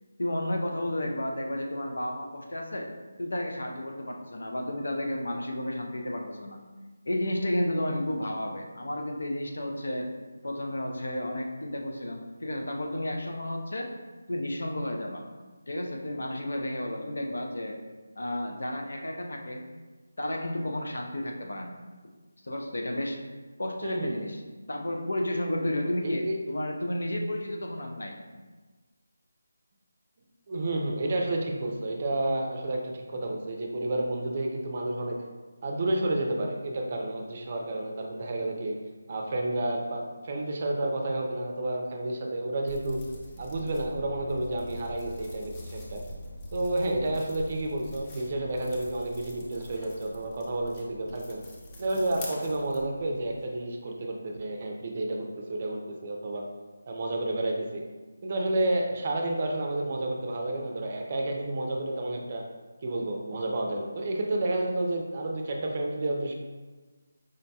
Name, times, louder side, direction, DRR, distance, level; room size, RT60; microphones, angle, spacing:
voice 1, 0.2-2.9 3.2-6.6 7.1-10.1 10.4-13.9 14.3-15.3 15.7-17.8 18.2-19.7 20.2-21.7 22.4-23.2 23.6-24.4 24.7-28.2, left 1 dB, 75° left, 1 dB, 0.6 m, -32 dB
voice 2, 23.8-24.3 26.0-26.3 30.5-35.2 35.6-38.7 39.1-43.0 43.4-46.0 46.5-51.4 51.8-56.4 56.9-57.8 58.2-62.4 62.8-66.3, right 1 dB, 40° right, 1 dB, 0.5 m, -30 dB
sound 1, 42.7-53.5, left 1 dB, 20° left, 0.5 m, -44 dB
4.9 x 2.2 x 2.7 m, 1.3 s
figure-of-eight pair, 160°, 0 cm